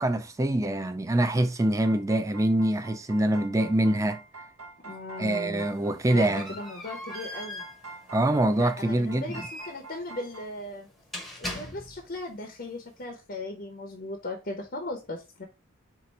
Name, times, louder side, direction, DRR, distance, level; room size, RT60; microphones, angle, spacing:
voice 1, 0.0-4.2 5.2-6.5 8.1-9.4, right 1 dB, 15° right, 0.3 m, -25 dB
sound 1, 1.4-10.5, right 3 dB, 80° right, 1.8 m, -46 dB
voice 2, 4.8-5.7 6.1-7.6 8.5-10.9 11.4-15.4, left 2 dB, 45° left, 0.7 m, -37 dB
sound 2, 5.6-12.2, left 1 dB, ahead, 0.9 m, -41 dB
4.5 x 2.5 x 4.1 m
head